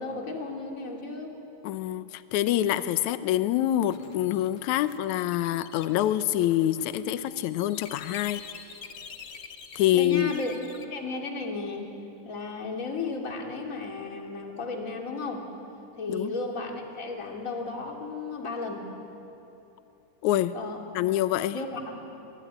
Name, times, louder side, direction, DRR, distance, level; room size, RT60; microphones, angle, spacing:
voice 1, 0.0-1.4 9.9-10.5 10.9-11.9 12.2-15.4 16.0-18.9 20.5-20.9 21.5-21.8, left 3 dB, 25° left, 1 dB, 3.0 m, -34 dB
voice 2, 1.6-8.4 9.8-10.3 16.1-16.3 20.2-20.6 20.9-21.6, left 13 dB, 75° left, 12 dB, 2.0 m, -26 dB
sound 1, 3.9-10.8, left 6 dB, 55° left, 1.6 m, -46 dB
25.0 x 24.0 x 9.9 m, 2.9 s
omnidirectional pair, 3.8 m